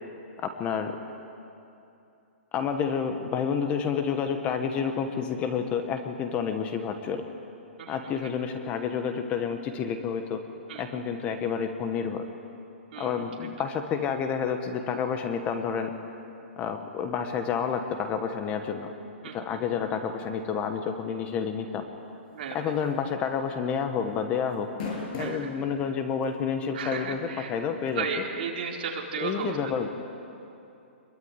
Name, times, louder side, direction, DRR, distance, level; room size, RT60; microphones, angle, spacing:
voice 1, 0.4-0.9 2.5-7.2 7.9-10.4 10.8-12.2 13.0-15.9 16.6-18.9 19.3-21.8 22.5-24.7 25.2-28.2 29.2-29.9, left 6 dB, 20° left, 7 dB, 1.3 m, -29 dB
voice 2, 7.8-8.3 10.7-11.0 12.9-13.3 19.2-19.6 22.3-22.7 25.2-25.5 26.7-27.5 27.9-29.7, right 6 dB, 45° right, -1 dB, 4.3 m, -35 dB
sound 1, 22.8-23.1 23.4-23.5 24.5-25.5 26.2-26.3 27.9-28.0, left 4 dB, 40° left, 7.8 m, -34 dB
26.0 x 22.5 x 9.7 m, 2.7 s
hypercardioid pair, 165°, 7 cm